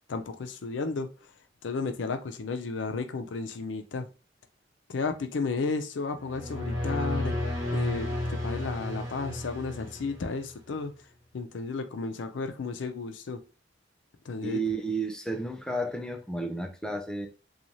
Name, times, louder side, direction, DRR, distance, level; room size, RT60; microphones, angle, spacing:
voice 1, 0.1-1.1 1.6-4.1 4.9-7.3 7.7-10.9 11.3-13.4 14.3-14.6, left 4 dB, 75° left, 0.5 m, -33 dB
sound 1, 6.2-10.5, left 1 dB, 75° right, 0.9 m, -32 dB
voice 2, 14.4-17.3, right 2 dB, 5° left, 0.4 m, -32 dB
3.0 x 2.3 x 2.6 m
head